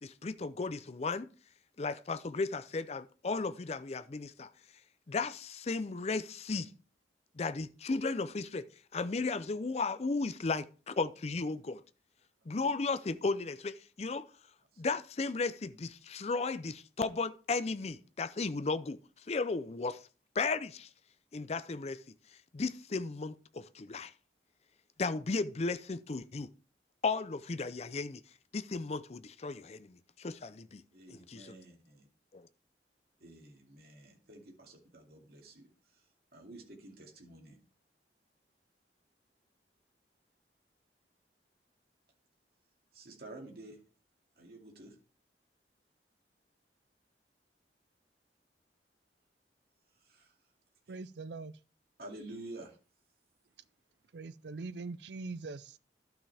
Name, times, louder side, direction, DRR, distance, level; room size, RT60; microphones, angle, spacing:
voice 1, 0.0-1.3 1.8-4.5 5.1-6.7 7.4-8.7 8.9-11.8 12.5-14.3 14.8-19.0 19.3-20.0 20.4-20.9 21.3-22.0 22.5-24.1 25.0-26.5 27.0-28.2 28.5-30.8 31.1-31.6 32.3-32.5, left 3 dB, 35° left, 0.5 m, -35 dB
voice 2, 30.9-32.1 33.2-35.7 36.3-37.6 42.9-43.8 44.4-44.9 50.1-50.3 52.0-52.8, right 2 dB, 60° right, 2.4 m, -50 dB
voice 3, 50.9-51.6 54.1-55.8, right 3 dB, 75° right, 0.5 m, -42 dB
12.0 x 5.8 x 3.4 m
head